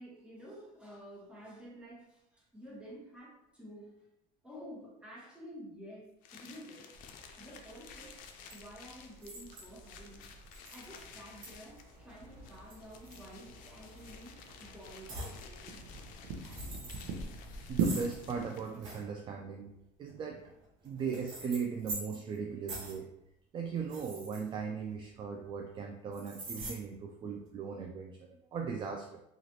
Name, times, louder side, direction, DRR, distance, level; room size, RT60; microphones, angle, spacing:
voice 1, 0.0-3.9 4.4-6.9 7.4-10.3 10.7-15.8, equal, 5° right, -5 dB, 1.2 m, -51 dB
sound 1, 6.2-18.8, left 6 dB, 65° left, 0.4 m, -54 dB
sound 2, 6.9-18.4, right 4 dB, 70° right, 0.7 m, -42 dB
sound 3, 8.3-8.5 9.2-9.8 10.5-11.0 11.4-11.5 12.5-13.6 14.0-14.2 15.1-15.4 16.3-17.1 17.8-19.0 20.1-22.4 22.7-23.0 23.8-25.1 26.1-26.7, right 1 dB, 85° right, 1.3 m, -45 dB
voice 2, 17.6-19.7 20.0-20.4 20.8-23.1 23.5-29.2, right 6 dB, 30° right, 2 dB, 0.3 m, -38 dB
3.1 x 2.4 x 2.8 m, 0.81 s
supercardioid pair, 105°, 16 cm